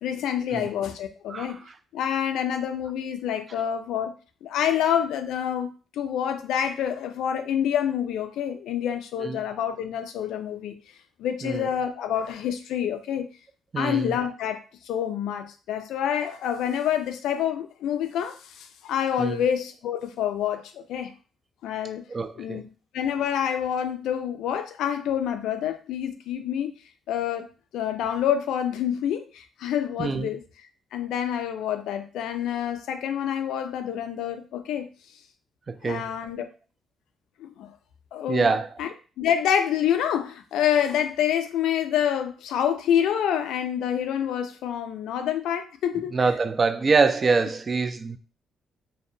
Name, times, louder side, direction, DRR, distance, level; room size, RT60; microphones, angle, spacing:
voice 1, 0.0-1.6 1.9-4.1 4.4-10.7 11.2-13.3 13.8-21.1 21.6-22.0 22.4-22.7 22.9-26.7 27.1-27.5 27.7-30.4 30.9-34.9 35.8-36.5 37.4-37.7 38.1-38.9 39.2-46.3, left 9 dB, 85° left, 0.3 m, -27 dB
voice 2, 13.7-14.1 19.2-19.4 22.1-22.6 30.0-30.3 35.7-36.0 38.3-38.7 46.1-48.2, right 4 dB, 35° right, 0.3 m, -25 dB
2.6 x 2.1 x 2.6 m
cardioid pair, 90°, 0 cm